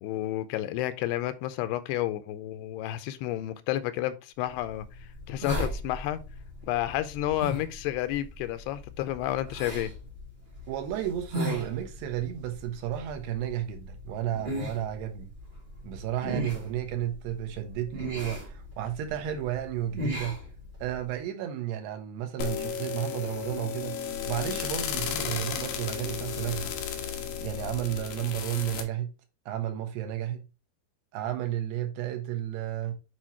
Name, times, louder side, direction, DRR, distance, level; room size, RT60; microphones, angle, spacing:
voice 1, 0.0-4.9 5.3-6.2 6.6-9.9, left 14 dB, 85° left, 2.6 m, -31 dB
sound 1, 4.5-21.1, left 1 dB, 15° right, 1.8 m, -38 dB
voice 2, 10.7-15.3 15.8-20.4 20.8-26.7 27.4-29.1 29.5-30.4 31.1-32.9, right 11 dB, 80° right, 3.1 m, -32 dB
sound 2, 22.4-28.8, left 8 dB, 70° left, 2.5 m, -34 dB
8.6 x 4.4 x 2.9 m
omnidirectional pair, 4.7 m